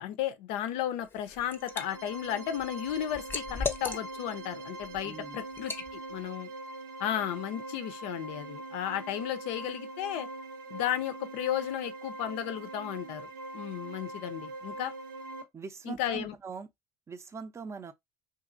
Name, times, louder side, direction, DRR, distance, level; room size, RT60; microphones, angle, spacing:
voice 1, 0.0-6.5 7.0-10.3 10.7-14.9 15.8-16.3, left 11 dB, 65° left, 0.5 m, -34 dB
Liquid, 1.0-1.9 2.3-4.4 4.8-5.0 5.6-5.9, left 4 dB, 20° left, 0.6 m, -36 dB
sound 1, 1.4-15.4, right 2 dB, 85° right, 0.6 m, -42 dB
voice 2, 5.0-5.4 15.5-16.7 17.1-17.9, right 5 dB, 25° right, 0.5 m, -42 dB
2.8 x 2.6 x 2.4 m
hypercardioid pair, 65°, 11 cm